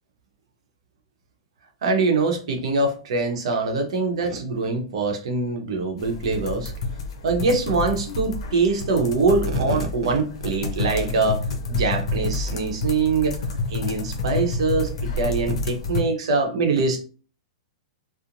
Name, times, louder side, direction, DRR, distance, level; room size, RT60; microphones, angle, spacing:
voice 1, 1.8-6.7 7.2-11.4 11.7-13.4 13.7-17.0, right 3 dB, 70° right, 4 dB, 0.8 m, -23 dB
sound 1, 6.0-16.0, left 3 dB, 70° left, 0.7 m, -29 dB
2.9 x 2.0 x 2.5 m, 0.38 s
hypercardioid pair, 145°, 3 cm